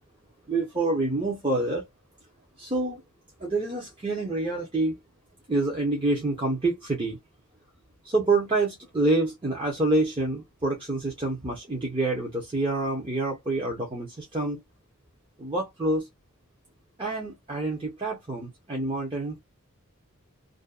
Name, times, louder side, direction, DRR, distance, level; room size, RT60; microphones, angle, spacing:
voice 1, 0.5-1.9 2.6-3.0 3.4-5.0 5.5-7.2 8.0-14.6 15.4-16.1 17.0-19.4, right 2 dB, 25° right, 0.6 m, -27 dB
2.5 x 2.1 x 2.3 m
head